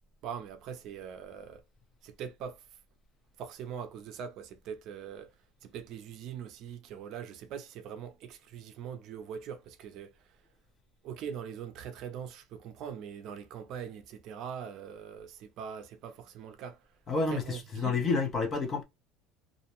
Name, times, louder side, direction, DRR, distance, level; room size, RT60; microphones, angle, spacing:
voice 1, 0.2-1.6 2.0-2.6 3.4-5.3 5.6-10.4 11.0-16.9 17.1-18.1, right 8 dB, 50° right, 0.5 m, -42 dB
voice 2, 17.1-18.8, left 4 dB, 25° left, 0.6 m, -29 dB
2.5 x 2.1 x 2.8 m
cardioid pair, 160°, 0 cm